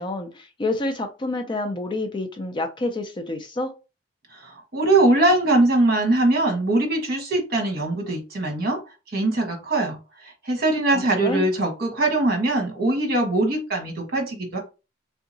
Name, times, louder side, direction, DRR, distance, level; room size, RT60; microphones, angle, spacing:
voice 1, 0.0-3.7 10.9-11.5, left 2 dB, 25° left, 0.4 m, -28 dB
voice 2, 4.3-8.8 9.1-10.0 10.2-14.6, right 2 dB, 50° right, 1.1 m, -22 dB
3.4 x 2.8 x 2.7 m
head